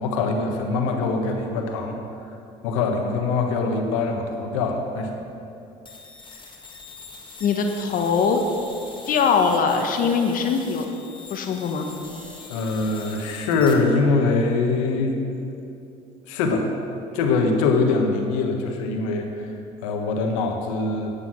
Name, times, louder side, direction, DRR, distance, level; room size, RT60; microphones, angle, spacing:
voice 1, 0.0-2.0 2.6-5.1 12.5-15.2 16.3-16.7 17.1-19.5 19.8-21.1, left 3 dB, 90° left, 3 dB, 1.3 m, -23 dB
sound 1, 5.9-13.7, left 4 dB, 30° left, 1.9 m, -43 dB
voice 2, 7.4-8.4 9.1-10.8 11.3-11.9, left 6 dB, 60° left, 4 dB, 1.2 m, -21 dB
9.8 x 8.4 x 6.1 m, 2.7 s
supercardioid pair, 75°, 16 cm